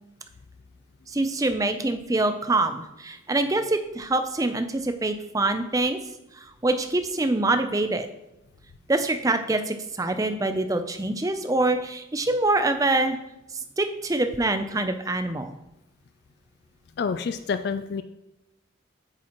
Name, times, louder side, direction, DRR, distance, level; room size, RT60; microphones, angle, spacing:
voice 1, 1.1-6.0 6.4-8.1 8.9-13.2 13.8-15.5, right 2 dB, 15° right, 8 dB, 0.5 m, -25 dB
voice 2, 17.0-18.0, left 5 dB, 50° left, 10 dB, 0.3 m, -28 dB
8.6 x 7.3 x 3.0 m, 0.92 s
head